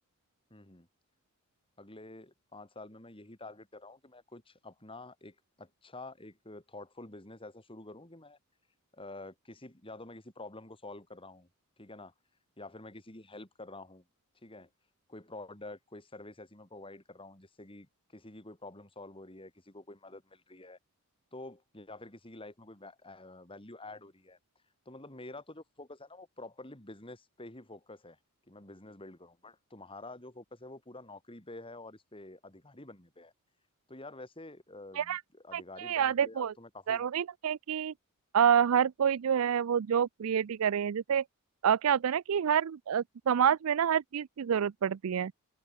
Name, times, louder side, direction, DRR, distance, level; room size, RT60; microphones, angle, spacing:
voice 1, 0.5-0.9 1.8-8.4 8.9-11.5 11.8-12.1 12.6-14.0 14.4-14.7 15.1-20.8 21.3-24.4 24.9-28.2 28.5-33.3 33.9-37.1, left 2 dB, 25° left, 3.8 m, -48 dB
voice 2, 35.5-36.5 36.9-37.9 38.3-41.2 41.6-45.3, right 8 dB, 70° right, 0.4 m, -28 dB
open air
head